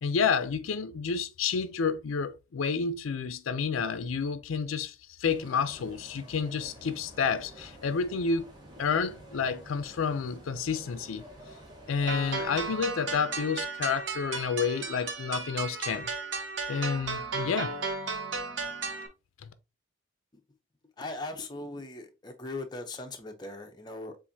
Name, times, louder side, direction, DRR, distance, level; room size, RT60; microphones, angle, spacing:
voice 1, 0.0-8.5 8.8-11.2 11.9-16.1 16.7-17.7 19.4-19.5, left 5 dB, 85° left, 0.4 m, -30 dB
sound 1, 5.2-12.8, right 1 dB, 20° right, 1.1 m, -50 dB
sound 2, 12.1-19.1, right 4 dB, 65° right, 0.8 m, -34 dB
voice 2, 21.0-24.2, left 2 dB, 20° left, 0.6 m, -39 dB
7.2 x 2.5 x 2.7 m
head